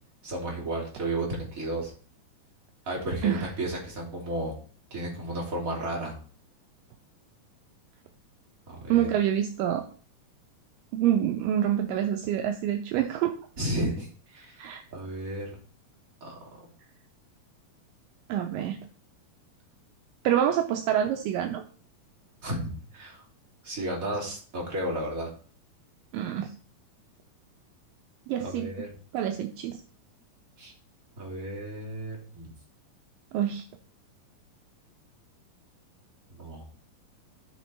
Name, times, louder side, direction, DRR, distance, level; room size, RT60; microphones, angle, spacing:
voice 1, 0.2-1.9 2.8-4.5 4.9-6.1 8.7-9.1 13.6-15.6 16.2-16.6 22.4-23.2 23.6-25.3 28.4-28.9 30.6-30.7 31.2-32.5 36.4-36.6, right 1 dB, 25° right, -2 dB, 2.9 m, -33 dB
voice 2, 8.9-9.9 10.9-13.4 14.6-14.8 18.3-18.8 20.2-21.6 26.1-26.5 28.3-28.7 29.1-29.8 33.3-33.6, right 10 dB, 80° right, 5 dB, 2.2 m, -26 dB
13.5 x 4.6 x 4.1 m, 0.41 s
omnidirectional pair, 4.1 m